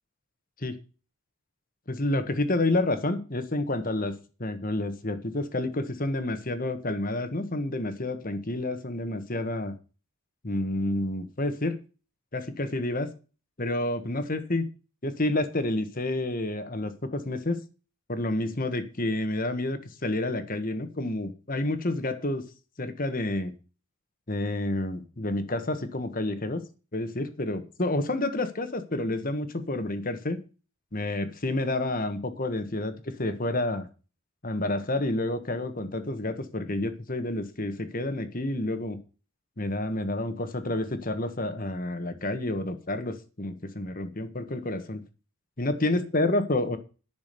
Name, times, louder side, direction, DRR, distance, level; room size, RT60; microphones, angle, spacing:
voice 1, 1.9-4.1 4.4-9.8 10.4-11.8 12.3-13.1 13.6-14.7 15.0-17.6 18.1-22.5 22.8-23.5 24.3-26.6 26.9-30.4 30.9-33.9 34.4-39.0 39.6-45.0 45.6-46.8, left 2 dB, 40° left, 9 dB, 1.4 m, -29 dB
11.0 x 6.3 x 6.8 m, 0.34 s
head